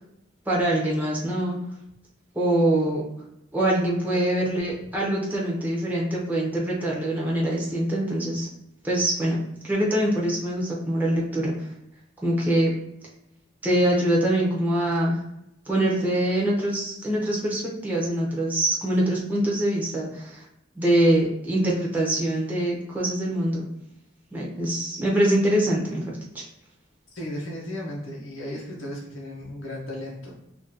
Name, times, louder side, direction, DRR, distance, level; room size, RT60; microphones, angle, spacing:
voice 1, 0.5-1.6 2.3-3.0 3.5-8.5 8.8-11.5 12.2-12.7 13.6-15.2 15.7-20.4 20.8-23.7 24.3-26.4, right 1 dB, 10° right, -5 dB, 0.9 m, -24 dB
voice 2, 27.1-30.4, left 1 dB, 85° left, -4 dB, 1.1 m, -35 dB
2.9 x 2.8 x 3.9 m, 0.81 s
head